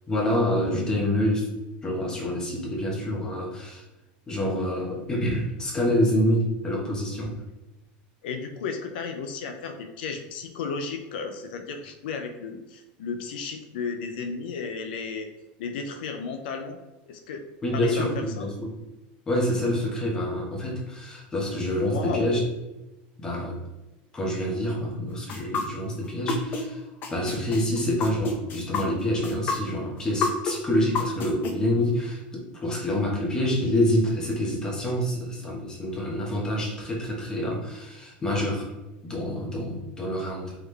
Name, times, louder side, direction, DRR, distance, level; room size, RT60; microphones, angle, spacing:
voice 1, 0.1-1.5 1.8-3.8 4.3-7.3 17.6-18.8 19.3-22.4 23.2-23.6 24.1-26.8 27.1-38.7 39.0-40.6, left 1 dB, 15° left, -3 dB, 1.1 m, -27 dB
voice 2, 8.2-15.3 15.6-16.8 17.1-17.4 17.7-18.1 18.4-18.5 21.8-22.4, left 5 dB, 85° left, 6 dB, 0.5 m, -34 dB
sound 1, 25.3-26.6 27.0-31.5, left 5 dB, 35° left, 0.6 m, -28 dB
3.7 x 3.3 x 3.3 m, 1.0 s
supercardioid pair, 150°, 5 cm